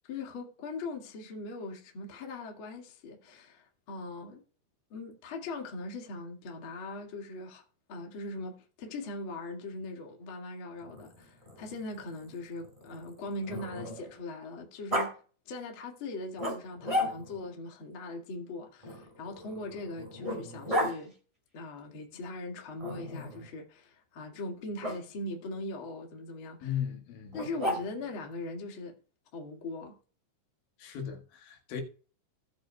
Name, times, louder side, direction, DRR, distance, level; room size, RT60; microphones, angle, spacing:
voice 1, 0.1-4.4 4.9-7.6 7.9-15.2 15.4-21.1 21.5-26.6 27.3-29.0 29.3-29.9, left 2 dB, 55° left, 1.5 m, -40 dB
Growling, 10.8-14.2 14.9-15.1 16.4-17.5 18.8-20.9 22.8-23.5 24.8-25.0 27.3-28.2, equal, 10° right, 2.4 m, -35 dB
voice 2, 26.6-27.4 30.8-31.8, left 8 dB, 75° left, 4.2 m, -36 dB
17.5 x 7.9 x 2.3 m
omnidirectional pair, 5.7 m